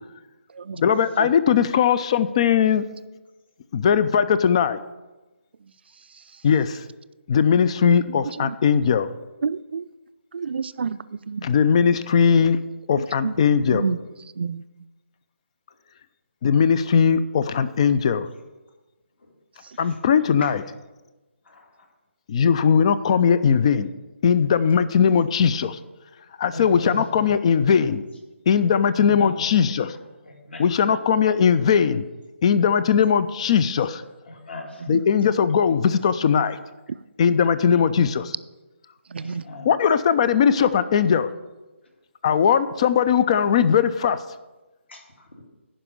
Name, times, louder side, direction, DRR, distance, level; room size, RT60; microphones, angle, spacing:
voice 1, 0.8-2.8 3.7-4.8 6.4-6.7 7.3-9.1 11.4-12.6 12.9-13.8 16.4-18.3 19.8-20.6 22.3-23.9 24.2-25.8 26.4-28.0 28.5-29.9 30.6-32.0 32.4-34.0 34.9-36.6 37.2-38.3 39.7-41.3 42.2-44.2, left 7 dB, 25° left, 14 dB, 0.4 m, -19 dB
voice 2, 8.1-8.6 9.4-9.9 10.3-11.0 11.3-11.4 12.9-13.3 13.7-14.6 19.6-19.8 34.8-35.1 39.1-39.4, right 5 dB, 55° right, 15 dB, 0.4 m, -30 dB
voice 3, 26.5-27.0 28.9-29.4 30.2-30.7 34.3-34.9 37.5-37.8 39.2-39.7 44.9-45.3, left 1 dB, 55° left, 1 dB, 2.4 m, -37 dB
11.0 x 5.0 x 6.7 m, 1.1 s
figure-of-eight pair, 150°, 7 cm